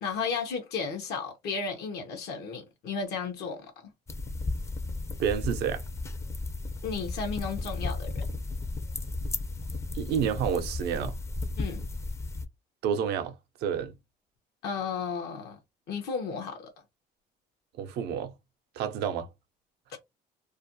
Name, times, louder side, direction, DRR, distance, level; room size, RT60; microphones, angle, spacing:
voice 1, 0.0-3.9 6.8-8.2 11.6-11.8 14.6-15.6 15.9-16.7 19.9-20.0, left 5 dB, 75° left, 0.7 m, -34 dB
sound 1, 4.1-12.5, left 2 dB, 15° left, 0.4 m, -34 dB
voice 2, 5.2-5.8 9.9-11.1 12.8-13.4 13.6-13.9 17.8-18.3 18.8-19.3, right 8 dB, 75° right, 0.5 m, -29 dB
2.4 x 2.1 x 2.6 m
cardioid pair, 110°, 17 cm